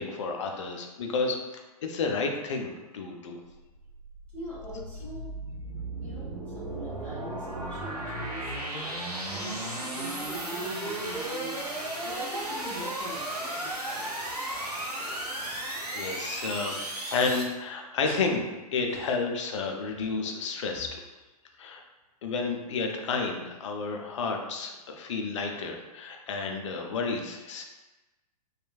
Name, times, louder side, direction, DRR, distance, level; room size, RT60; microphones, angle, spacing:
voice 1, 0.0-3.4 9.4-9.5 15.1-15.6 15.9-16.7 17.1-18.4 18.7-21.0 21.6-21.8 22.2-27.6, left 4 dB, 50° left, 3 dB, 0.4 m, -31 dB
sound 1, 3.4-17.4, right 1 dB, 85° right, 0.5 m, -35 dB
voice 2, 4.3-5.3 6.0-11.6 12.0-14.3 16.6-16.9 17.2-17.4 18.0-18.3 18.9-19.1, equal, 5° left, -13 dB, 1.0 m, -43 dB
3.0 x 2.3 x 2.3 m, 1.1 s
figure-of-eight pair, 110°, 20 cm